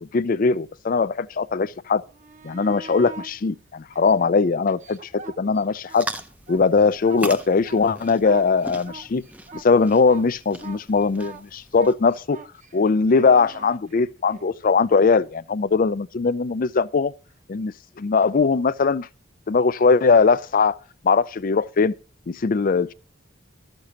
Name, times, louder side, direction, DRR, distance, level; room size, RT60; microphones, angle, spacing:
voice 1, 0.0-2.0 2.4-6.1 6.5-9.2 9.5-12.4 12.7-17.1 17.5-19.1 19.5-20.8 21.0-21.9 22.3-22.9, left 4 dB, 45° left, 0.4 m, -20 dB
sound 1, 2.1-3.3 3.9-6.0 6.3-14.5 17.3-17.4, right 3 dB, 40° right, 1.0 m, -42 dB
sound 2, 5.9-12.2, right 1 dB, 5° right, 0.6 m, -39 dB
13.0 x 6.6 x 5.7 m
head